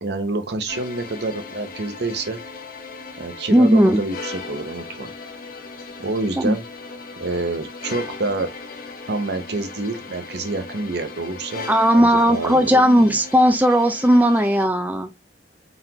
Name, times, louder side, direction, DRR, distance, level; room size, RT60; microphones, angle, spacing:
voice 1, 0.0-2.4 3.2-5.1 6.0-6.6 7.2-8.5 9.1-11.7 11.9-13.2, right 2 dB, 65° right, 0.9 m, -27 dB
sound 1, 0.7-14.7, left 4 dB, 55° left, 0.9 m, -37 dB
voice 2, 3.5-4.0 6.4-6.6 11.7-15.1, equal, 10° right, 0.5 m, -16 dB
4.0 x 3.6 x 2.8 m
head